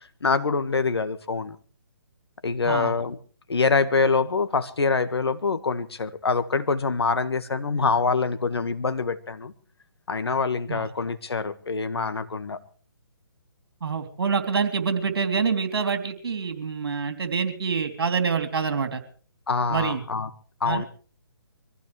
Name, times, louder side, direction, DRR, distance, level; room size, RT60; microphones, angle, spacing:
voice 1, 0.2-1.6 2.4-3.2 3.5-9.5 10.1-12.6 19.5-20.3 20.6-20.8, left 4 dB, 80° left, 10 dB, 1.8 m, -25 dB
voice 2, 2.6-3.0 10.7-10.8 13.8-19.0 19.7-20.0 20.6-20.9, right 5 dB, 65° right, 7 dB, 3.2 m, -26 dB
24.0 x 15.5 x 3.4 m, 0.41 s
hypercardioid pair, 150°, 13 cm